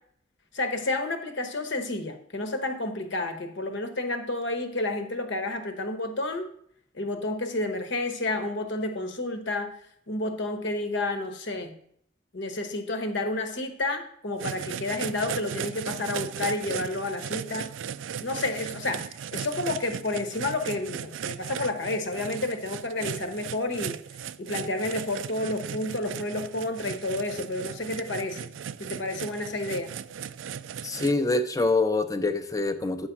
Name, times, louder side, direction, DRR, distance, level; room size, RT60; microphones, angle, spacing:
voice 1, 0.5-6.5 6.9-9.7 10.1-11.7 12.3-17.7 18.2-19.0 19.3-24.0 24.4-28.5 28.8-29.9, left 2 dB, 70° left, 7 dB, 1.1 m, -30 dB
sound 1, 14.4-31.1, right 8 dB, 80° right, 0.3 m, -37 dB
voice 2, 30.8-33.1, left 3 dB, 20° left, 8 dB, 0.6 m, -25 dB
8.9 x 4.1 x 5.9 m, 0.66 s
head